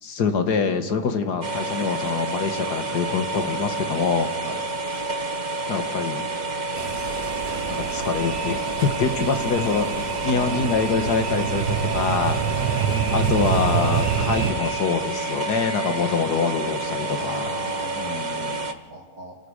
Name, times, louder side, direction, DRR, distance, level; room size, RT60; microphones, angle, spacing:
voice 1, 0.0-4.3 5.7-6.2 7.7-9.9 10.2-12.6 13.1-17.5 18.0-18.6, left 5 dB, 75° left, 7 dB, 2.0 m, -25 dB
sound 1, 1.4-18.7, right 2 dB, 35° right, 0.9 m, -29 dB
sound 2, 6.8-14.5, right 7 dB, 80° right, 1.7 m, -27 dB
voice 2, 12.6-12.9 16.9-19.4, right 2 dB, 60° right, 0 dB, 2.7 m, -38 dB
sound 3, 12.8-16.3, left 1 dB, 25° left, 1.7 m, -39 dB
29.0 x 16.5 x 6.5 m, 1.4 s
omnidirectional pair, 1.8 m